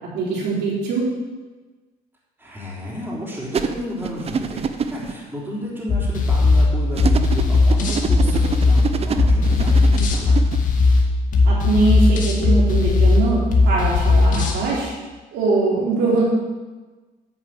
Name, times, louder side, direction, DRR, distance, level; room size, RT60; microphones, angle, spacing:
voice 1, 0.0-1.1 11.4-14.9 15.3-16.2, right 3 dB, 80° right, -5 dB, 4.0 m, -22 dB
voice 2, 2.4-10.4, equal, 10° right, -6 dB, 3.6 m, -32 dB
sound 1, 3.5-5.1 7.0-10.6, right 6 dB, 35° right, 0.7 m, -26 dB
sound 2, 5.9-14.6, left 3 dB, 50° left, 2.0 m, -17 dB
10.5 x 5.4 x 7.8 m, 1.3 s
cardioid pair, 110°, 17 cm